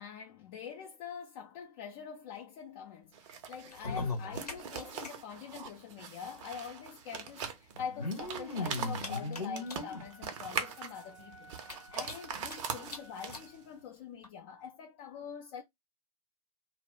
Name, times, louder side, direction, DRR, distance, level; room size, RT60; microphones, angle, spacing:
voice 1, 0.0-15.6, left 7 dB, 40° left, 0.4 m, -45 dB
sound 1, 3.1-13.7, right 6 dB, 55° right, 0.6 m, -42 dB
sound 2, 3.6-5.1 5.4-5.5 5.6-5.7 6.8-6.9 7.7-10.0 10.6-10.7 11.1-11.2 11.6-12.5 12.9-13.0 13.3-13.4 14.2-14.3, left 3 dB, 90° left, 0.8 m, -38 dB
Wind instrument woodwind instrument, 9.6-13.9, right 1 dB, 5° right, 0.6 m, -57 dB
2.1 x 2.1 x 3.6 m
figure-of-eight pair, 95°, 19 cm